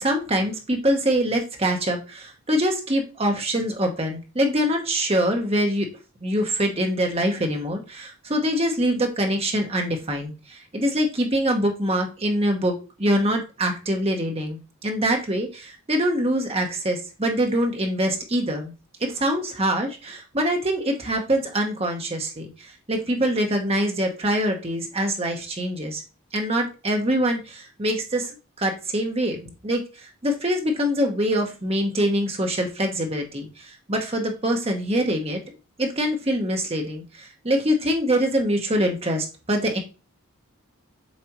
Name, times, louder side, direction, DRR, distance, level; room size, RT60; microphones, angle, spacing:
voice 1, 0.0-5.9 6.2-18.7 19.0-26.0 26.3-35.4 35.8-39.8, equal, 25° right, 3 dB, 1.0 m, -24 dB
7.3 x 4.2 x 3.0 m, 0.31 s
head